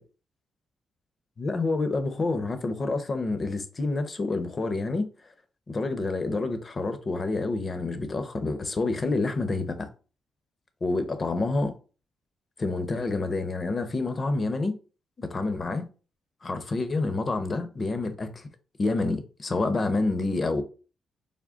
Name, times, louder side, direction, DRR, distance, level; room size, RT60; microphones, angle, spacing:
voice 1, 1.4-5.0 5.7-9.9 10.8-11.7 12.6-14.7 15.2-15.8 16.4-18.5 18.8-20.6, left 3 dB, 40° left, 0.7 m, -28 dB
3.6 x 2.2 x 3.6 m
cardioid pair, 70°, 0 cm